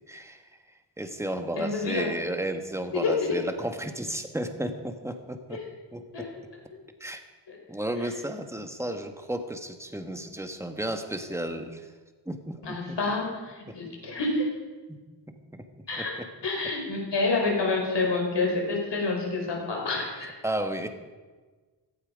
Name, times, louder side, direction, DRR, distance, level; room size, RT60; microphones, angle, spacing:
voice 1, 0.1-0.4 1.0-5.6 5.9-6.3 7.0-7.2 7.7-11.9 12.3-13.0 13.7-13.8 15.5-15.6 16.0-16.3 20.2-20.9, right 1 dB, 5° right, 6 dB, 1.3 m, -33 dB
voice 2, 1.6-2.1 2.9-3.1 5.5-5.6 6.1-6.3 7.5-7.6 12.6-14.5 15.9-20.3, left 3 dB, 65° left, -1 dB, 4.8 m, -28 dB
16.5 x 16.0 x 5.2 m, 1.3 s
wide cardioid pair, 165°, 45 cm